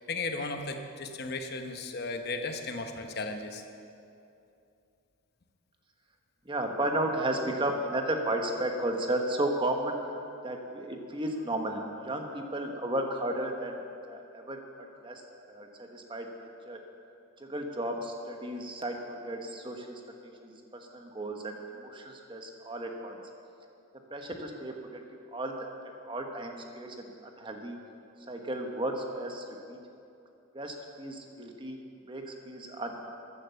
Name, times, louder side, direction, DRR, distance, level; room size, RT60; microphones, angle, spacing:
voice 1, 0.0-3.6, left 3 dB, 50° left, 5 dB, 0.9 m, -35 dB
voice 2, 6.4-10.0 10.4-13.8 14.1-14.6 15.0-16.3 16.6-16.8 17.4-23.2 24.1-25.0 25.3-25.7 26.1-27.8 28.3-29.8 30.5-31.8 32.1-33.1, right 1 dB, 25° right, 3 dB, 1.1 m, -34 dB
14.0 x 9.8 x 6.8 m, 2.6 s
head